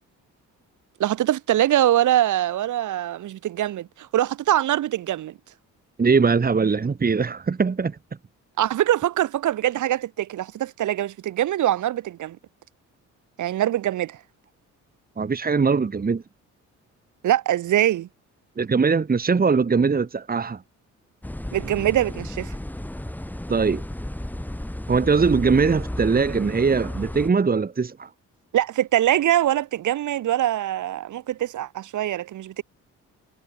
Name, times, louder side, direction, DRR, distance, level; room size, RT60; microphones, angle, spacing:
voice 1, 1.0-5.3 8.6-12.4 13.4-14.2 17.2-18.1 21.5-22.5 28.5-32.6, right 12 dB, 75° right, 6.3 m, -23 dB
voice 2, 6.0-8.0 15.2-16.2 18.6-20.6 23.5-23.8 24.9-28.1, right 5 dB, 30° right, 2.3 m, -21 dB
sound 1, 21.2-27.3, left 1 dB, 5° left, 4.7 m, -33 dB
cardioid pair, 90°, 30 cm